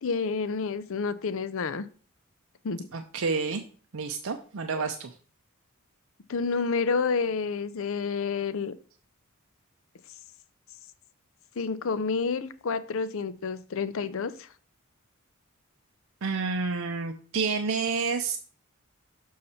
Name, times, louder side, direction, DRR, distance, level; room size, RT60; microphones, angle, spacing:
voice 1, 0.0-1.9 2.6-2.9 4.8-4.9 6.3-8.7 11.6-14.5, left 5 dB, 65° left, 15 dB, 0.5 m, -29 dB
voice 2, 2.9-3.6 3.9-5.1 16.2-18.4, right 4 dB, 65° right, 5 dB, 0.6 m, -29 dB
6.6 x 5.6 x 4.2 m, 0.42 s
head